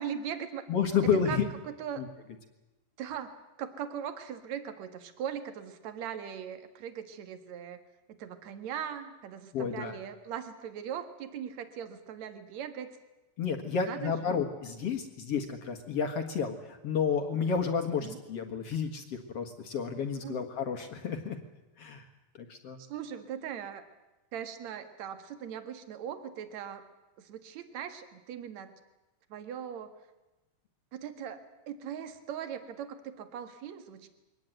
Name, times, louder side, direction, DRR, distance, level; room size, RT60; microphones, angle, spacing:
voice 1, 0.0-0.6 1.3-2.0 3.0-3.3 3.6-7.8 8.1-12.9 13.9-14.4 18.0-18.2 20.2-20.4 22.8-23.8 24.3-26.8 27.2-28.8 29.3-29.9 30.9-34.1, right 8 dB, 55° right, 9 dB, 2.6 m, -40 dB
voice 2, 0.7-1.5 2.0-2.1 9.5-10.0 13.4-21.4 21.8-22.1 22.3-22.8, left 6 dB, 50° left, 5 dB, 2.1 m, -31 dB
23.0 x 18.5 x 9.2 m, 1.0 s
omnidirectional pair, 4.4 m